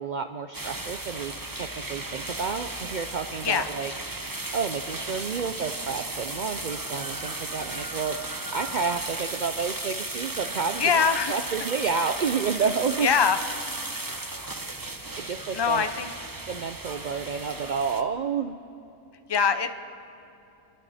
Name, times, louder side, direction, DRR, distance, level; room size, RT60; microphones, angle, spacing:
voice 1, 0.0-8.2 8.5-13.1 15.2-15.9 16.5-18.6, right 5 dB, 65° right, 7 dB, 0.4 m, -30 dB
sound 1, 0.5-18.0, right 2 dB, 20° right, 0.7 m, -35 dB
voice 2, 10.8-11.3 13.0-13.4 15.5-16.1 19.3-19.7, left 6 dB, 30° left, 8 dB, 0.5 m, -23 dB
29.0 x 22.0 x 4.2 m, 2.7 s
omnidirectional pair, 1.5 m